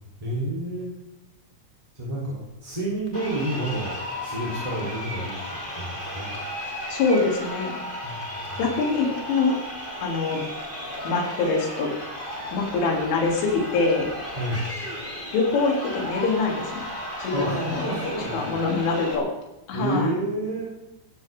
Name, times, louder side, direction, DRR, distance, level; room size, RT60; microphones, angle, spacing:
voice 1, 0.2-0.9 1.9-3.9 4.2-5.4 5.7-6.3 8.0-8.6 14.3-14.6 17.3-18.6 19.7-20.7, right 1 dB, 10° right, -7 dB, 2.8 m, -29 dB
Crowd, 3.1-19.1, left 1 dB, 15° left, 2.3 m, -34 dB
voice 2, 6.9-7.7 8.6-9.6 10.0-10.4 11.0-11.9 12.5-14.1 15.3-16.8 17.2-19.3 19.7-20.1, left 4 dB, 75° left, 0 dB, 5.7 m, -24 dB
17.5 x 15.5 x 3.8 m, 0.98 s
omnidirectional pair, 5.8 m